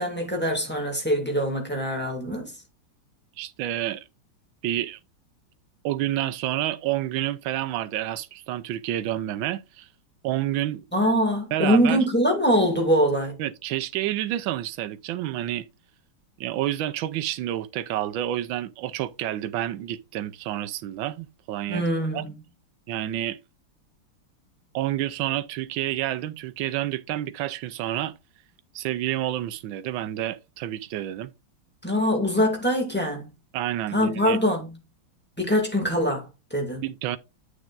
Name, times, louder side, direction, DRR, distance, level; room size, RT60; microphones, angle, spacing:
voice 1, 0.0-2.5 10.9-13.4 21.7-22.3 31.8-33.3 33.9-34.7 35.4-36.8, equal, 5° left, 2.1 m, -23 dB
voice 2, 3.4-4.0 4.6-5.0 5.8-9.9 10.2-10.8 11.5-12.0 13.4-15.7 16.4-21.8 22.1-22.2 22.9-23.4 24.7-28.1 28.7-31.3 33.5-34.4 36.8-37.2, right 13 dB, 70° right, 1.3 m, -29 dB
9.9 x 6.4 x 2.5 m
omnidirectional pair, 2.4 m